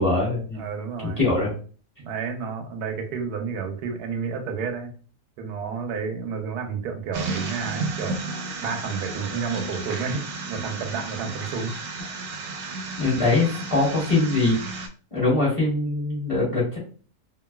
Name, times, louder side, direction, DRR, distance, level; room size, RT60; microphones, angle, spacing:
voice 1, 0.0-0.6 1.0-1.5 12.9-14.8 15.1-16.8, left 2 dB, 25° left, -6 dB, 1.2 m, -22 dB
voice 2, 0.5-1.2 2.0-4.9 5.4-8.2 8.6-11.7, right 5 dB, 90° right, 5 dB, 1.1 m, -30 dB
sound 1, 7.1-14.9, right 3 dB, 70° right, 0.9 m, -33 dB
3.0 x 2.5 x 2.2 m, 0.40 s
omnidirectional pair, 1.6 m